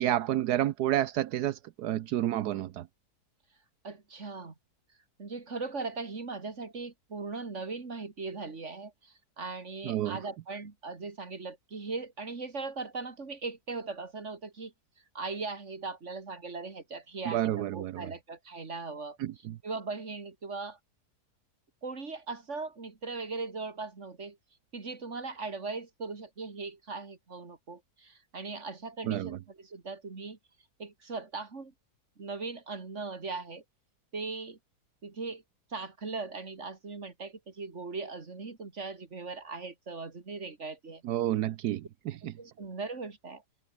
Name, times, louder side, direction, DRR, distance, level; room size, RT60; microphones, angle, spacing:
voice 1, 0.0-2.9 9.8-10.2 17.3-18.1 19.2-19.6 29.0-29.4 41.0-42.3, right 13 dB, 80° right, 1.2 m, -30 dB
voice 2, 3.8-4.5 5.2-14.7 15.1-19.2 19.6-20.8 21.8-24.4 24.7-30.4 30.8-31.7 32.2-33.6 34.1-34.6 35.0-35.4 35.7-41.0 42.4-43.4, right 4 dB, 45° right, 2.6 m, -39 dB
omnidirectional pair, 1.7 m